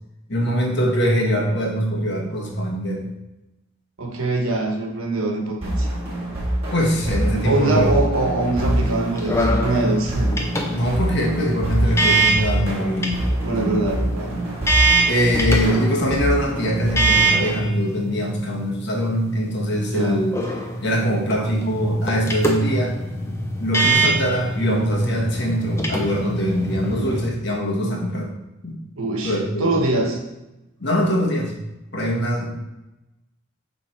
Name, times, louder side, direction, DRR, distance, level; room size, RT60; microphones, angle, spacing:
voice 1, 0.3-3.0 6.7-7.9 10.7-13.2 13.5-13.9 14.3-14.5 15.1-20.3 20.8-23.0 23.6-28.3 28.6-28.8 29.2-29.8 30.8-31.5 31.9-32.7, equal, 50° left, -1 dB, 1.3 m, -22 dB
voice 2, 4.0-5.9 7.4-10.3 13.4-14.3 19.9-20.3 29.0-30.2, right 2 dB, 75° right, 1 dB, 1.2 m, -23 dB
sound 1, 5.6-17.6, right 1 dB, 25° right, 1.8 m, -25 dB
sound 2, 8.7-27.3, right 2 dB, 10° left, 0.6 m, -25 dB
7.4 x 3.5 x 4.6 m, 0.98 s
head